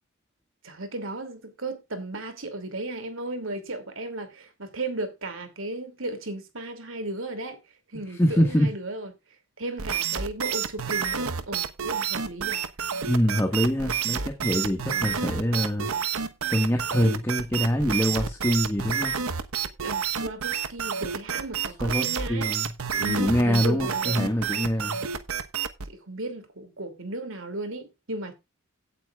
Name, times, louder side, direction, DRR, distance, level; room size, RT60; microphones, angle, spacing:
voice 1, 0.6-7.6 7.9-9.1 9.6-12.7 14.9-15.2 19.8-22.7 22.9-24.2 25.8-28.3, right 2 dB, 60° right, 2.7 m, -35 dB
voice 2, 8.2-8.7 13.1-15.9 16.5-19.1 21.8-22.7 23.0-25.0, equal, 10° left, 1.6 m, -24 dB
sound 1, 9.8-25.9, right 7 dB, 80° right, 1.1 m, -29 dB
16.5 x 8.5 x 2.4 m
head